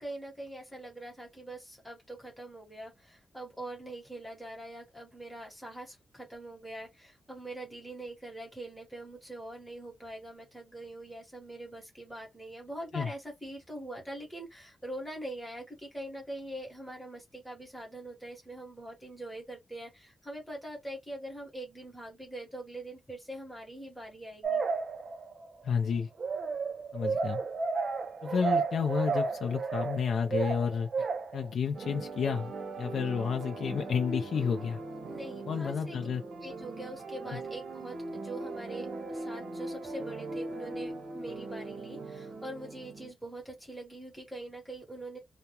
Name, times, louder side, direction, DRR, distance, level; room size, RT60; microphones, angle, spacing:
voice 1, 0.0-24.6 35.1-36.1 36.4-45.2, right 1 dB, 5° left, 1.1 m, -43 dB
sound 1, 24.4-25.5 26.2-31.5, right 4 dB, 45° right, 0.4 m, -32 dB
voice 2, 25.6-26.1 26.9-27.4 28.2-31.1 31.3-34.8 35.5-36.2 37.3-37.4, left 6 dB, 70° left, 0.4 m, -31 dB
sound 2, 31.7-43.1, right 2 dB, 70° right, 0.7 m, -40 dB
2.3 x 2.1 x 2.8 m
wide cardioid pair, 175°, 0 cm